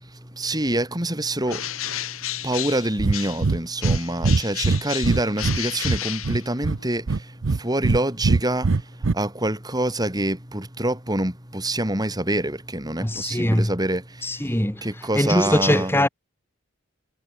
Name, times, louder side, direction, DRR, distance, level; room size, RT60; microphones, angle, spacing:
voice 1, 0.1-15.9, right 1 dB, 20° right, 5.9 m, -26 dB
Bird, 1.4-3.5 3.8-6.9, left 12 dB, 80° left, 2.8 m, -32 dB
Breathing, 3.0-3.2 3.4-5.6 5.8-6.8 7.1-8.0 8.2-9.1, right 3 dB, 65° right, 0.6 m, -21 dB
voice 2, 13.0-13.7 14.2-16.1, left 1 dB, 10° left, 2.0 m, -22 dB
head